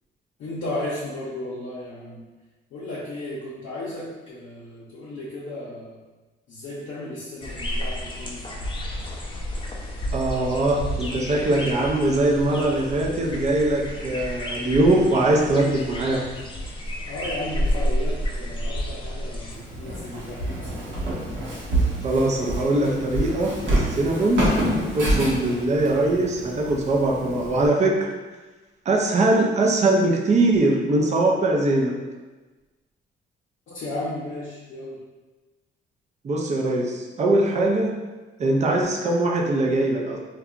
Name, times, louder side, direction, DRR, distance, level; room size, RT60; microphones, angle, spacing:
voice 1, 0.4-2.3 2.7-6.0 6.5-8.6 17.1-21.0 33.7-35.0, left 1 dB, 65° left, -8 dB, 0.6 m, -34 dB
sound 1, 7.4-19.6, equal, 25° left, 0.4 m, -30 dB
voice 2, 10.1-16.2 22.0-24.5 24.9-28.1 28.9-32.0 36.2-38.0 38.4-40.2, right 2 dB, 35° right, 0 dB, 0.4 m, -21 dB
Walk footsteps, 19.5-27.7, right 1 dB, 70° right, 0.8 m, -27 dB
2.8 x 2.2 x 2.4 m, 1.2 s
cardioid pair, 90°, 20 cm